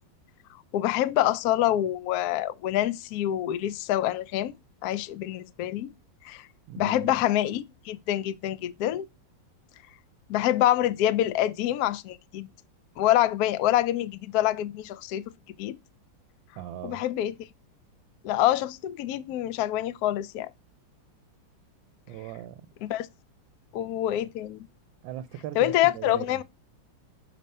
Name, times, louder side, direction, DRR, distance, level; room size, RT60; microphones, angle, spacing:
voice 1, 0.7-4.5 4.8-5.9 6.2-6.5 6.8-9.1 10.3-12.5 13.0-15.2 15.6-15.8 16.8-17.3 18.2-20.5 22.8-23.1 23.7-24.7 25.6-26.4, left 13 dB, 75° left, 0.8 m, -26 dB
voice 2, 6.7-7.2 16.6-17.0 22.1-22.6 25.0-26.4, right 12 dB, 80° right, 1.3 m, -39 dB
6.0 x 3.2 x 5.3 m
omnidirectional pair, 2.1 m